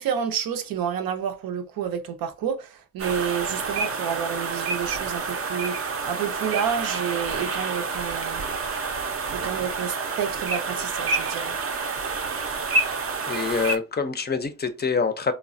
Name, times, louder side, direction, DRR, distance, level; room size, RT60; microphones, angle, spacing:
voice 1, 0.0-8.4 9.3-11.6, right 8 dB, 90° right, 0.5 m, -29 dB
sound 1, 3.0-13.8, right 4 dB, 40° right, 0.5 m, -28 dB
voice 2, 13.3-15.3, left 5 dB, 30° left, 0.4 m, -25 dB
3.2 x 2.0 x 2.4 m
cardioid pair, 75°, 34 cm